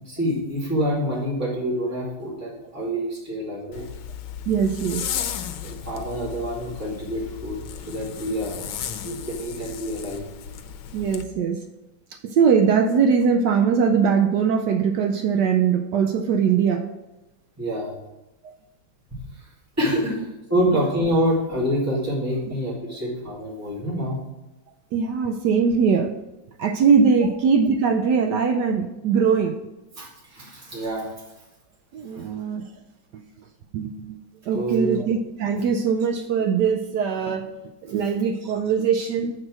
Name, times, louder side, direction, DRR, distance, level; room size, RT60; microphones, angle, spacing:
voice 1, 0.1-3.8 5.2-5.3 5.6-7.6 7.9-8.7 9.0-10.2 17.6-17.9 19.8-20.2 20.5-24.2 30.0-31.1 32.1-32.2 34.5-35.0, equal, 10° right, -8 dB, 2.4 m, -26 dB
Zipper (clothing), 3.7-11.2, left 8 dB, 85° left, 1.4 m, -35 dB
voice 2, 4.5-5.1 10.9-11.6 12.2-16.8 18.4-18.5 24.9-26.1 26.6-29.6 31.9-32.6 33.1-33.2 33.7-34.2 34.5-37.5 37.8-39.3, right 6 dB, 75° right, 5 dB, 1.0 m, -21 dB
7.5 x 4.5 x 6.1 m, 0.99 s
omnidirectional pair, 2.1 m